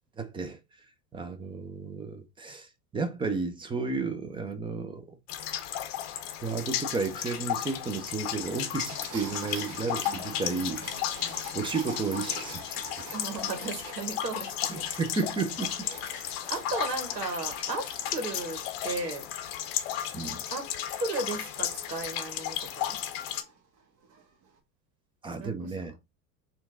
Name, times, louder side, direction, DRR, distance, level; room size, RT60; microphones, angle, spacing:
voice 1, 0.2-0.6 1.1-5.2 6.4-10.8 11.5-13.1 14.7-15.9 20.1-20.4 25.2-25.9, right 4 dB, 10° right, 0.6 m, -33 dB
sound 1, 5.3-23.4, left 11 dB, 45° left, 0.7 m, -34 dB
sound 2, 8.8-24.6, right 4 dB, 40° right, 1.3 m, -48 dB
voice 2, 10.1-11.7 13.1-14.8 15.8-19.3 20.5-20.7 20.9-23.0 25.4-25.7, right 3 dB, 85° right, 1.2 m, -36 dB
4.4 x 2.5 x 3.7 m
figure-of-eight pair, 85°, 48 cm